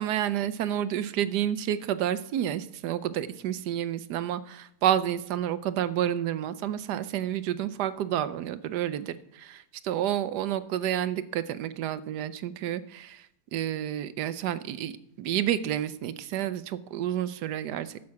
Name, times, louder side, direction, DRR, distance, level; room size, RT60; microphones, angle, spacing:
voice 1, 0.0-13.3 13.5-18.0, right 11 dB, 80° right, 14 dB, 1.2 m, -30 dB
13.0 x 7.5 x 5.8 m, 0.77 s
omnidirectional pair, 1.8 m